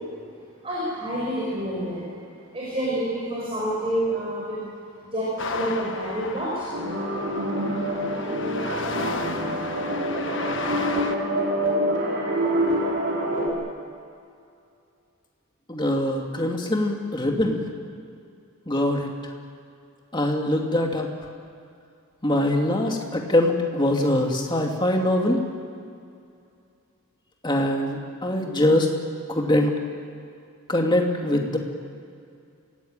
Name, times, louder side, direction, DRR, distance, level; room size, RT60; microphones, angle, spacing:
voice 1, 0.6-2.0 2.5-4.6 5.1-6.7, right 1 dB, 25° right, -6 dB, 6.0 m, -28 dB
sound 1, 5.4-11.2, left 3 dB, 55° left, 1.4 m, -34 dB
sound 2, 6.7-13.5, equal, 50° right, 4.6 m, -26 dB
voice 2, 15.7-17.6 18.7-19.1 20.1-21.1 22.2-25.4 27.4-28.9 29.3-29.8 30.7-31.6, left 1 dB, 20° left, 1 dB, 2.4 m, -23 dB
25.5 x 17.5 x 9.0 m, 2.4 s
head